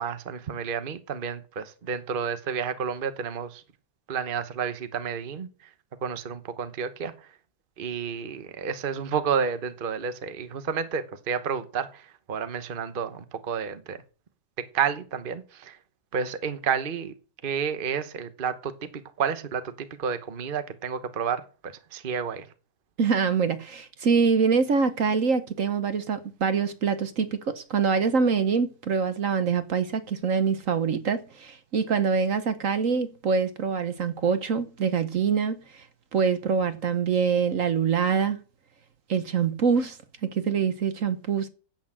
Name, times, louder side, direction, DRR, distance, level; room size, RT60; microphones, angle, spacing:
voice 1, 0.0-3.6 4.1-5.5 6.0-7.1 7.8-14.0 14.7-15.8 16.1-17.1 17.4-18.9 19.2-22.5, right 6 dB, 40° right, 1.1 m, -30 dB
voice 2, 23.0-35.8 36.1-38.4 39.1-40.0 40.3-41.5, right 5 dB, 60° right, 1.4 m, -25 dB
10.5 x 8.4 x 7.6 m
omnidirectional pair, 1.7 m